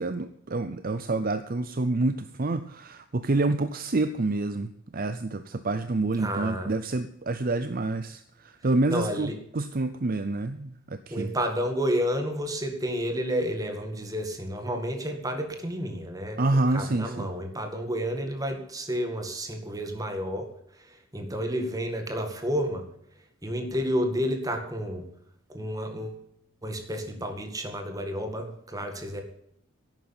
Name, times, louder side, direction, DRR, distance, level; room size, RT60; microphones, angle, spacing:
voice 1, 0.0-11.3 16.4-17.3, right 2 dB, 40° right, 11 dB, 0.6 m, -28 dB
voice 2, 6.2-6.7 8.9-9.3 11.1-16.4 16.7-20.5 21.1-22.8 23.4-25.0 25.5-26.2 26.6-29.2, equal, 15° right, 5 dB, 2.0 m, -30 dB
11.5 x 9.1 x 8.8 m, 0.73 s
head